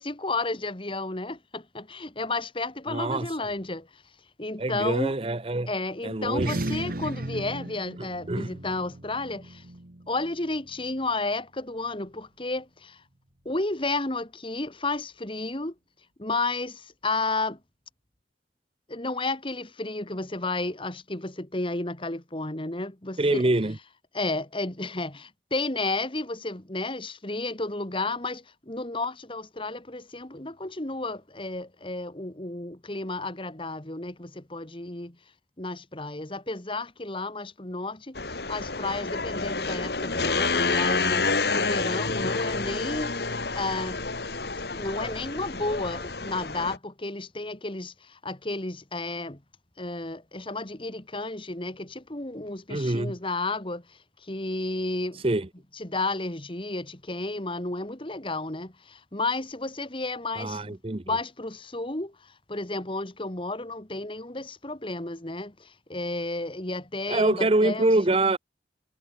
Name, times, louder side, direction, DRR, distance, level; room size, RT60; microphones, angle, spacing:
voice 1, 0.0-4.0 4.4-5.1 5.7-9.6 10.1-13.0 13.5-15.7 16.2-17.6 18.9-23.4 24.1-35.2 35.6-44.0 44.7-49.4 49.8-55.2 55.7-60.8 61.0-67.9, left 2 dB, 30° left, 2.1 m, -32 dB
voice 2, 2.9-3.3 4.6-5.7 6.0-6.5 8.3-8.5 23.2-23.7 52.7-53.2 55.2-55.5 60.4-61.0 67.1-68.4, right 2 dB, 30° right, 0.9 m, -25 dB
sound 1, 6.2-11.0, right 1 dB, 55° right, 1.6 m, -36 dB
sound 2, 38.2-46.8, left 4 dB, 65° left, 2.4 m, -29 dB
head